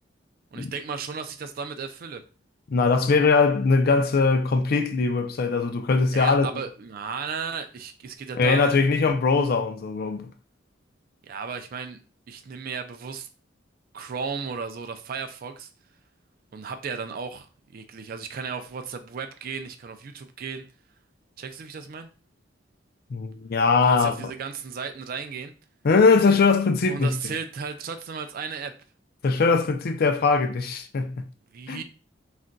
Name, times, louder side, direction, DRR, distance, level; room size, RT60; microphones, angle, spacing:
voice 1, 0.5-2.2 6.1-8.8 11.2-12.0 12.3-13.3 13.9-15.7 16.5-20.7 21.4-22.1 23.8-25.5 26.9-28.7 31.5-31.8, right 5 dB, 50° right, 0.4 m, -35 dB
voice 2, 2.7-6.5 8.3-10.3 23.1-24.1 25.8-27.1 29.2-31.2 31.7-31.8, left 4 dB, 55° left, 0.4 m, -21 dB
2.4 x 2.2 x 3.8 m
head